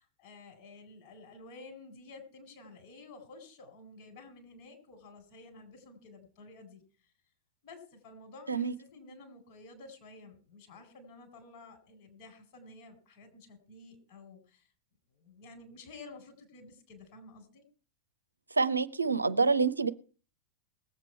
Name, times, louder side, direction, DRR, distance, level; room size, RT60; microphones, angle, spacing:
voice 1, 0.0-6.8 7.6-14.7 15.1-17.6, left 3 dB, 45° left, 4.3 m, -52 dB
voice 2, 18.5-19.9, right 4 dB, 80° right, 0.6 m, -27 dB
19.5 x 8.2 x 4.6 m
figure-of-eight pair, 90°, 0 cm